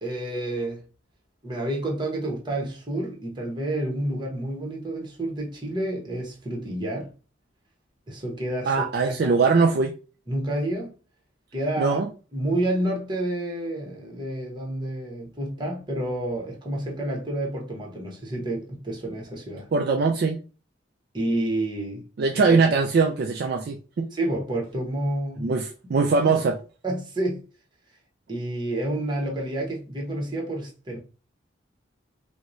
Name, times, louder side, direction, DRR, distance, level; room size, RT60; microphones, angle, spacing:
voice 1, 0.0-0.8 1.4-7.1 8.1-9.4 10.3-10.9 11.5-12.0 12.3-19.7 21.1-22.0 22.3-22.6 24.1-25.5 26.8-27.4 28.3-31.0, right 1 dB, 25° right, 0.9 m, -29 dB
voice 2, 8.7-9.9 11.8-12.1 19.7-20.4 22.2-24.1 25.4-26.6, right 4 dB, 50° right, 0.3 m, -21 dB
4.5 x 2.1 x 2.6 m
head